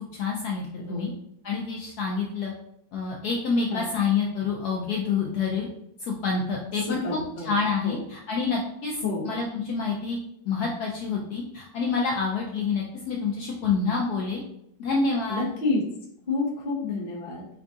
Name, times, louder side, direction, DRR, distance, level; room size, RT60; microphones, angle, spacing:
voice 1, 0.1-1.1 1.4-2.5 2.9-5.7 6.0-9.0 9.2-10.2 10.5-14.4 14.8-15.5, left 5 dB, 70° left, -2 dB, 0.9 m, -27 dB
voice 2, 0.8-1.2 3.7-3.9 6.9-7.6 7.8-8.0 9.0-9.3 15.3-15.8 16.3-17.5, left 3 dB, 45° left, -2 dB, 0.7 m, -29 dB
4.5 x 2.3 x 2.5 m, 0.74 s
omnidirectional pair, 2.0 m